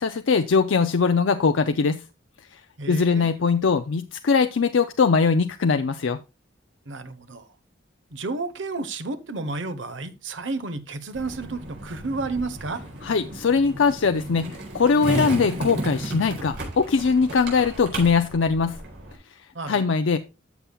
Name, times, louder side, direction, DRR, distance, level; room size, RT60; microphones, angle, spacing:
voice 1, 0.0-2.0 2.9-6.2 13.0-14.5 14.7-18.8 19.7-20.2, left 5 dB, 85° left, 0.5 m, -21 dB
voice 2, 2.8-3.3 6.9-7.5 8.1-12.8 19.5-19.8, right 3 dB, 85° right, 1.0 m, -31 dB
Skateboard, 11.1-19.1, right 1 dB, 65° right, 4.2 m, -34 dB
13.0 x 6.9 x 2.3 m
head